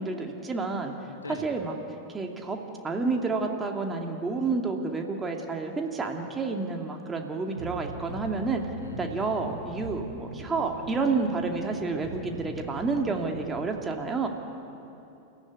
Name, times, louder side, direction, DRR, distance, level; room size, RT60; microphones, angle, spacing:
voice 1, 0.0-0.9 1.4-1.7 2.1-2.6 2.8-8.6 9.0-14.3, right 4 dB, 15° right, 2 dB, 2.4 m, -29 dB
voice 2, 1.1-1.5 8.8-9.6, left 2 dB, 75° left, 3 dB, 2.7 m, -42 dB
sound 1, 7.5-13.7, right 1 dB, 65° right, 6.0 m, -41 dB
29.5 x 14.5 x 9.3 m, 2.9 s
figure-of-eight pair, 90°, 0 cm